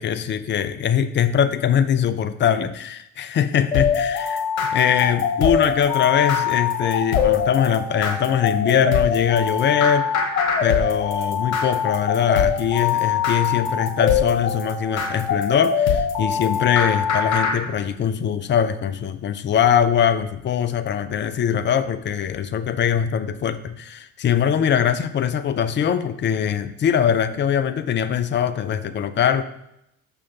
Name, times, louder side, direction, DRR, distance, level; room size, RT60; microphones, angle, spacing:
voice 1, 0.0-4.4 4.7-10.1 10.6-29.4, left 8 dB, 25° left, 11 dB, 0.5 m, -22 dB
sound 1, 3.7-17.6, left 7 dB, 70° left, 1.2 m, -23 dB
6.2 x 5.6 x 4.0 m, 0.81 s
figure-of-eight pair, 55°, 42 cm